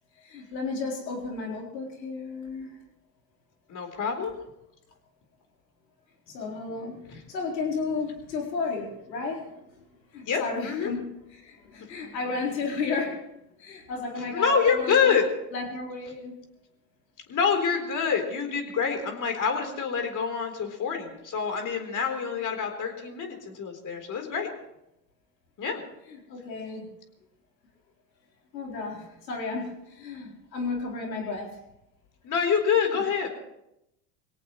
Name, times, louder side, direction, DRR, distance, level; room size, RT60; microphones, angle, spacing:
voice 1, 0.2-2.8 6.3-9.7 10.1-13.3 13.6-15.2 15.5-16.4 26.0-26.9 28.5-31.5 32.9-33.1, left 4 dB, 85° left, 0 dB, 4.3 m, -33 dB
voice 2, 3.7-4.3 7.1-7.2 10.3-10.9 14.2-15.2 17.3-24.5 25.6-25.8 32.2-33.4, left 6 dB, 35° left, 4 dB, 3.9 m, -26 dB
23.0 x 17.5 x 3.2 m, 0.85 s
hypercardioid pair, 85°, 50 cm